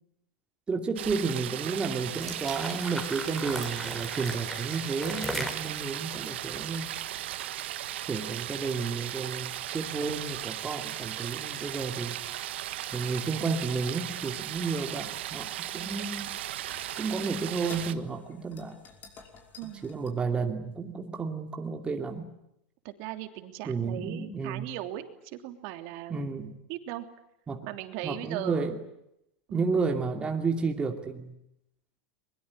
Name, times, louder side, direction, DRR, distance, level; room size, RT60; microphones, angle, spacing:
voice 1, 0.7-6.9 8.1-12.2 12.9-16.3 17.0-18.8 19.8-22.3 23.7-24.7 26.1-26.5 27.5-27.7 28.0-28.8 29.5-31.3, right 4 dB, 15° right, 3 dB, 2.7 m, -32 dB
sound 1, 1.0-17.9, right 13 dB, 85° right, 1.5 m, -37 dB
sound 2, 2.2-7.3, equal, 5° left, 4.4 m, -38 dB
sound 3, 15.0-20.1, left 4 dB, 30° left, 5.6 m, -52 dB
voice 2, 19.6-20.0 22.8-26.4 26.7-27.1 27.6-28.7 29.5-29.7, right 14 dB, 55° right, 7 dB, 3.1 m, -38 dB
22.5 x 22.5 x 9.9 m, 0.81 s
supercardioid pair, 130°, 6 cm